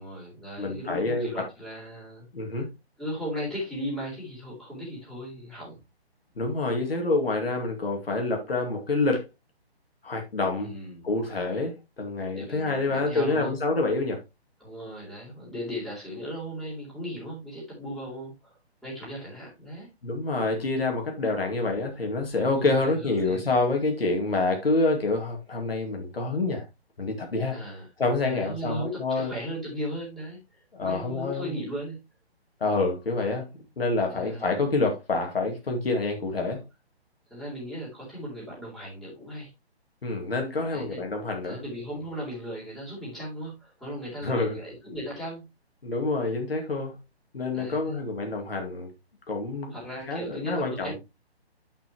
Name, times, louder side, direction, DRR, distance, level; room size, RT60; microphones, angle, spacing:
voice 1, 0.0-2.3 3.0-5.8 10.6-11.1 12.3-13.6 14.6-19.9 22.3-23.5 27.5-27.9 28.3-32.0 34.1-34.5 36.3-36.6 37.3-39.5 40.7-41.0 41.4-45.4 47.5-48.0 49.7-51.0, equal, ahead, 3.8 m, -37 dB
voice 2, 0.6-1.5 2.3-2.7 6.4-9.3 10.0-10.7 11.0-14.2 20.0-26.7 27.0-27.6 28.0-29.3 30.7-31.6 32.6-33.5 33.8-36.6 40.0-41.6 44.2-44.6 45.8-46.9 47.3-48.9 49.3-49.8 50.1-50.9, left 3 dB, 65° left, 2.4 m, -27 dB
10.0 x 5.8 x 3.0 m
figure-of-eight pair, 140°, 32 cm